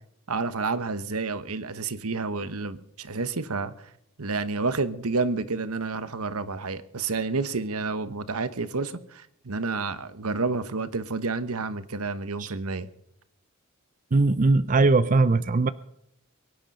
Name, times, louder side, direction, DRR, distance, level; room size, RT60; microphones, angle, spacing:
voice 1, 0.3-3.7 4.2-12.9, right 3 dB, 85° right, 13 dB, 1.2 m, -29 dB
voice 2, 14.1-15.7, right 3 dB, 35° right, 14 dB, 0.5 m, -20 dB
23.0 x 10.5 x 5.4 m, 0.78 s
head